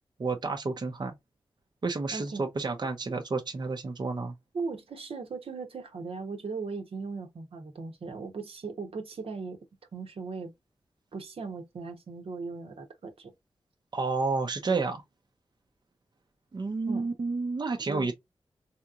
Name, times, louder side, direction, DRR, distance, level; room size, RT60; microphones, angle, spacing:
voice 1, 0.2-1.2 1.8-4.3 13.9-15.0 16.5-18.1, right 3 dB, 45° right, 0.6 m, -30 dB
voice 2, 2.1-2.4 4.5-9.6 9.9-10.5 11.1-13.3 16.9-17.1 17.9-18.1, right 4 dB, 75° right, 0.9 m, -38 dB
3.4 x 2.9 x 2.4 m
cardioid pair, 65°, 10 cm